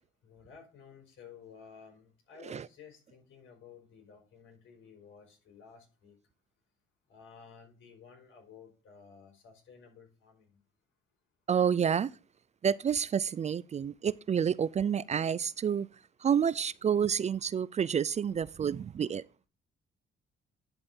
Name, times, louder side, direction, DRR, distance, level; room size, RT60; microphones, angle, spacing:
voice 1, 0.2-6.1 7.1-10.6, left 6 dB, 75° left, 4.1 m, -54 dB
voice 2, 11.5-12.1 12.6-15.9 16.2-19.2, right 8 dB, 35° right, 0.4 m, -29 dB
11.0 x 4.4 x 5.4 m
cardioid pair, 90°, 20 cm